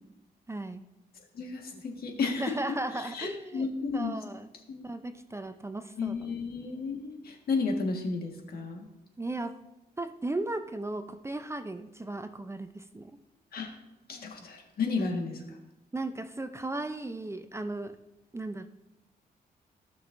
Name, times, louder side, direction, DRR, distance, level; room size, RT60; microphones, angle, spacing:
voice 1, 0.5-0.9 2.2-3.7 3.9-4.5 4.8-6.3 9.2-9.6 10.0-13.1 15.9-18.0 18.3-18.7, right 2 dB, 15° right, 9 dB, 0.5 m, -36 dB
voice 2, 1.3-2.6 3.0-4.1 4.7-4.8 6.0-8.9 13.5-13.7 14.1-15.4, left 4 dB, 70° left, 2 dB, 1.6 m, -32 dB
15.5 x 6.2 x 2.6 m, 0.94 s
cardioid pair, 95°, 17 cm